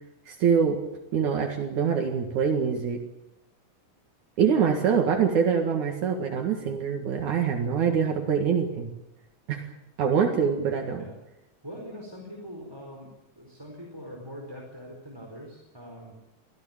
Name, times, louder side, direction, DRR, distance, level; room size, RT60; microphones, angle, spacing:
voice 1, 0.3-0.8 1.1-3.0 4.4-8.9 9.5-9.7 10.0-11.0, right 7 dB, 70° right, 3 dB, 3.3 m, -24 dB
voice 2, 11.6-16.2, equal, 5° right, 0 dB, 4.3 m, -42 dB
25.0 x 16.5 x 8.9 m, 0.89 s
omnidirectional pair, 3.6 m